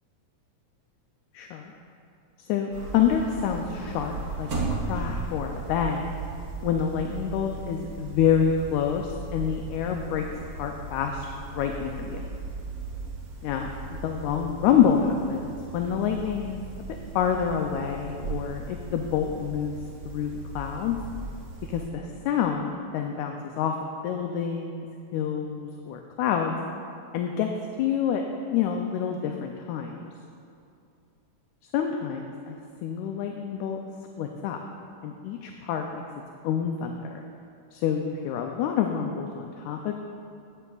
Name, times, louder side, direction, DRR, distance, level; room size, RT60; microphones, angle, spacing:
voice 1, 1.3-1.7 2.5-6.2 6.6-10.3 10.5-12.2 13.4-16.6 16.9-19.7 20.1-21.0 21.7-23.8 24.0-24.9 25.1-26.6 27.1-27.5 27.8-28.2 28.5-30.1 31.7-33.8 34.2-34.6 35.0-36.0 36.4-37.2 37.7-39.9, left 8 dB, 80° left, 3 dB, 1.9 m, -27 dB
sound 1, 2.7-21.9, right 3 dB, 50° right, 2.0 m, -37 dB
13.0 x 9.4 x 2.4 m, 2.5 s
omnidirectional pair, 3.4 m